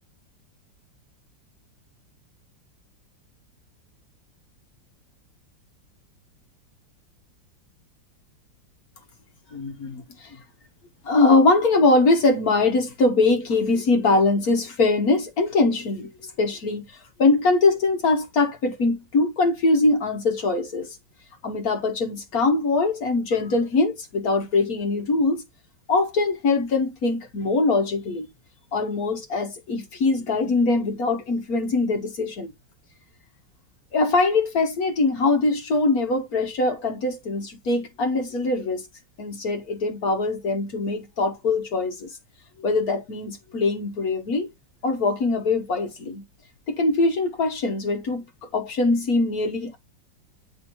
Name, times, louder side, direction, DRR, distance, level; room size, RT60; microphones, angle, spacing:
voice 1, 9.5-10.4 11.0-21.0 21.4-25.4 25.9-28.3 28.7-32.5 33.9-38.9 39.2-42.2 42.6-44.5 44.8-46.2 46.7-49.8, left 3 dB, 55° left, 1.3 m, -22 dB
8.5 x 4.3 x 3.0 m
omnidirectional pair, 2.0 m